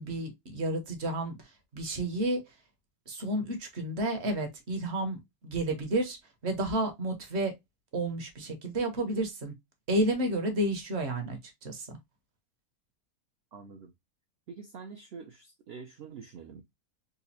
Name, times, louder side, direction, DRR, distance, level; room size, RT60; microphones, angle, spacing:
voice 1, 0.0-2.4 3.1-6.2 6.4-7.5 7.9-9.5 9.9-12.0, right 1 dB, 50° right, 1.1 m, -31 dB
voice 2, 13.5-13.9 14.5-16.6, right 5 dB, 70° right, 0.5 m, -46 dB
4.0 x 2.4 x 2.7 m
omnidirectional pair, 1.6 m